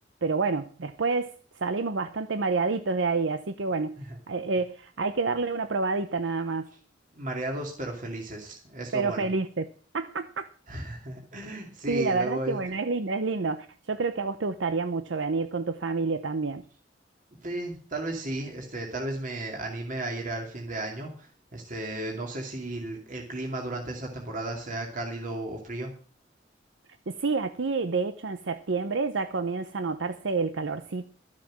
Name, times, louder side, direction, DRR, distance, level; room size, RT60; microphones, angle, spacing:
voice 1, 0.2-4.0 4.3-6.7 8.9-9.7 9.9-10.5 11.9-16.6 27.1-31.0, right 4 dB, 85° right, 10 dB, 0.7 m, -28 dB
voice 2, 7.2-9.3 10.7-12.6 17.4-25.9, right 1 dB, 45° right, 1 dB, 2.4 m, -34 dB
12.5 x 7.5 x 7.4 m, 0.42 s
head